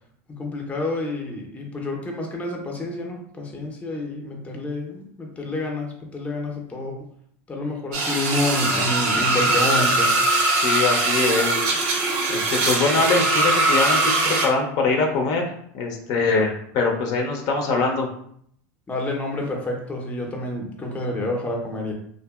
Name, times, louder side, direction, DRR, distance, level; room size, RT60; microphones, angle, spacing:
voice 1, 0.4-7.1 7.5-10.1 18.9-21.9, left 2 dB, 15° left, 1 dB, 0.6 m, -28 dB
sound 1, 7.9-14.5, right 2 dB, 65° right, 0.7 m, -21 dB
voice 2, 10.5-11.6 12.3-18.1, left 4 dB, 55° left, 2 dB, 0.6 m, -23 dB
2.8 x 2.4 x 2.3 m, 0.65 s
supercardioid pair, 105°, 8 cm